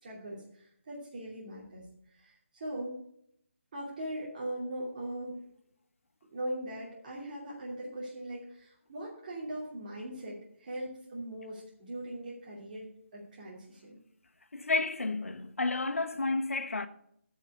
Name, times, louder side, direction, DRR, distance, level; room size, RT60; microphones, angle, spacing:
voice 1, 0.0-2.9 3.7-5.4 6.3-14.0, right 1 dB, 40° right, 2.8 m, -40 dB
voice 2, 14.5-16.9, left 3 dB, 85° left, 1.0 m, -31 dB
9.1 x 5.7 x 8.2 m
figure-of-eight pair, 165°, 7 cm